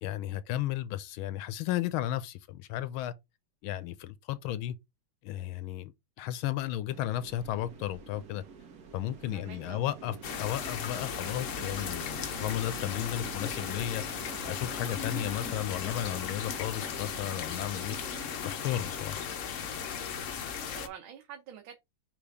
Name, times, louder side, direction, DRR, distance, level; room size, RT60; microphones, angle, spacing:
voice 1, 0.0-3.1 3.6-4.7 5.2-5.9 6.2-8.4 8.9-14.0 14.4-18.0 18.4-19.2, left 12 dB, 80° left, 1.4 m, -34 dB
sound 1, 6.9-18.4, right 6 dB, 55° right, 1.5 m, -48 dB
voice 2, 9.3-9.8 20.5-21.7, right 9 dB, 75° right, 1.6 m, -47 dB
sound 2, 10.2-20.9, left 7 dB, 60° left, 0.8 m, -36 dB
6.0 x 3.3 x 4.7 m
omnidirectional pair, 2.3 m